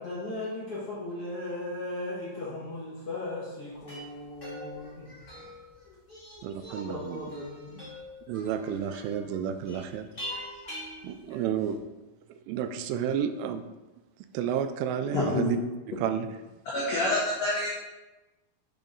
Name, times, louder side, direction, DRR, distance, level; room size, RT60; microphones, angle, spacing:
voice 1, 0.0-7.9 8.3-10.8, left 2 dB, 45° left, -9 dB, 1.8 m, -39 dB
sound 1, 3.7-11.8, equal, 25° left, 1.1 m, -45 dB
voice 2, 6.4-7.3 8.3-10.1 11.0-11.8 12.5-13.6 14.3-15.6 16.0-16.3, right 9 dB, 90° right, 9 dB, 3.1 m, -30 dB
voice 3, 15.1-15.5 16.7-17.7, left 2 dB, 80° left, -5 dB, 1.5 m, -27 dB
8.3 x 6.9 x 4.0 m, 1.1 s
omnidirectional pair, 5.4 m